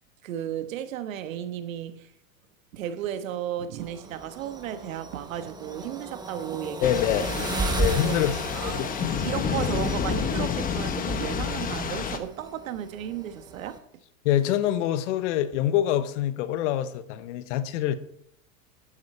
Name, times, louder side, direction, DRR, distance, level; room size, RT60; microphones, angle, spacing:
voice 1, 0.2-2.1 2.7-7.3 7.9-8.2 8.5-13.8, right 10 dB, 80° right, 1.4 m, -34 dB
sound 1, 3.8-13.8, right 3 dB, 10° right, 1.0 m, -35 dB
voice 2, 6.8-7.3 7.8-8.4 8.6-8.9 14.2-18.0, left 11 dB, 60° left, 1.1 m, -25 dB
Thunder / Rain, 6.8-12.2, left 6 dB, 20° left, 1.0 m, -29 dB
12.0 x 8.7 x 4.3 m
supercardioid pair, 125°, 40 cm